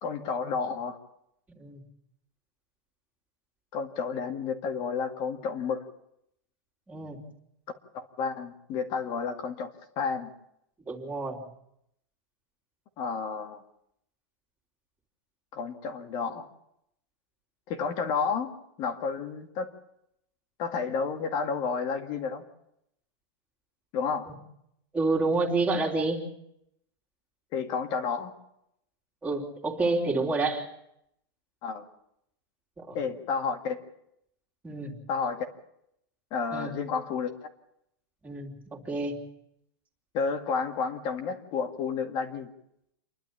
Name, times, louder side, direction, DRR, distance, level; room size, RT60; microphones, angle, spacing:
voice 1, 0.0-1.0 3.7-5.8 7.7-10.3 13.0-13.6 15.5-16.5 17.7-19.7 20.6-22.4 23.9-24.3 27.5-28.3 31.6-31.8 32.9-33.8 35.1-35.5 36.3-37.3 40.1-42.5, left 5 dB, 35° left, 6 dB, 2.1 m, -31 dB
voice 2, 1.5-1.8 6.9-7.2 10.9-11.4 24.9-26.2 29.2-30.7 32.8-33.0 34.6-34.9 36.5-36.7 38.2-39.2, right 3 dB, 10° right, -2 dB, 3.3 m, -29 dB
28.5 x 11.5 x 8.7 m, 0.78 s
supercardioid pair, 150°, 13 cm